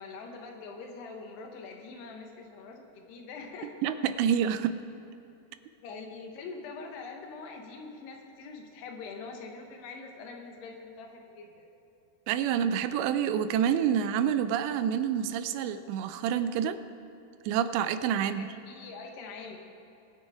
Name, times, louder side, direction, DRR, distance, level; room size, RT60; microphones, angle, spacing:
voice 1, 0.0-3.7 5.8-11.7 18.1-19.6, left 4 dB, 75° left, 3 dB, 3.2 m, -44 dB
voice 2, 3.6-4.8 12.3-16.8 17.5-18.5, right 9 dB, 90° right, 11 dB, 2.9 m, -28 dB
21.5 x 9.6 x 3.5 m, 2.9 s
omnidirectional pair, 4.9 m